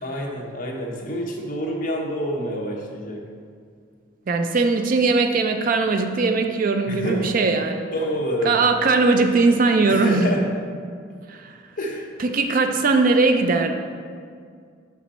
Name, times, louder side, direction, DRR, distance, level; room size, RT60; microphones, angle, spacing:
voice 1, 0.0-3.2 6.9-7.2 7.9-8.6 9.9-10.4 11.8-12.1, equal, 40° left, -1 dB, 0.9 m, -27 dB
voice 2, 4.3-7.9 8.4-10.4 11.3-11.6 12.2-13.7, right 3 dB, 40° right, 6 dB, 0.4 m, -20 dB
5.9 x 5.4 x 4.1 m, 2.1 s
head